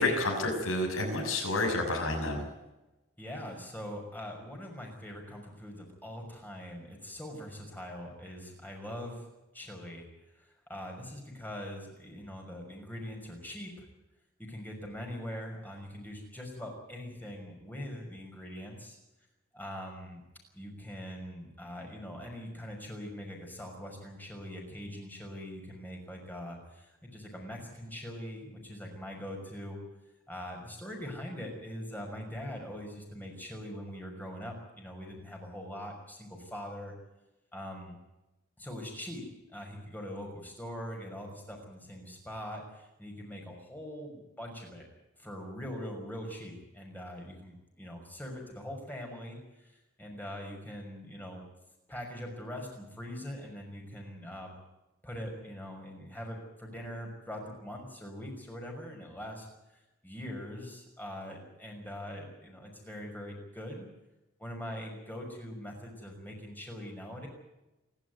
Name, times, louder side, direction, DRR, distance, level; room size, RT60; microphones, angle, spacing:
voice 1, 0.0-2.4, left 2 dB, 90° left, 0 dB, 6.7 m, -29 dB
voice 2, 3.2-9.3 9.5-10.1 10.3-13.9 14.5-19.0 19.5-20.2 20.5-29.8 30.3-36.9 37.5-38.0 38.6-39.2 39.5-44.9 45.2-51.4 51.9-54.5 55.0-59.5 60.0-63.9 64.4-67.3, equal, 10° left, 1 dB, 5.9 m, -42 dB
27.5 x 12.0 x 9.5 m, 0.98 s
head